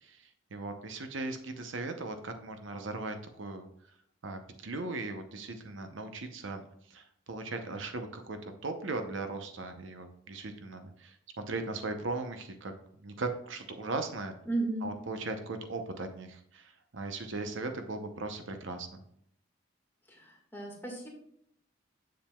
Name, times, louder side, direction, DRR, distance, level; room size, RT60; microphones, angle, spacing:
voice 1, 0.0-3.7 4.2-12.7 13.0-14.3 14.8-19.0, right 3 dB, 75° right, 7 dB, 0.8 m, -38 dB
voice 2, 14.4-14.8 20.1-21.1, right 2 dB, 10° left, -2 dB, 1.7 m, -34 dB
7.3 x 7.2 x 2.3 m, 0.70 s
head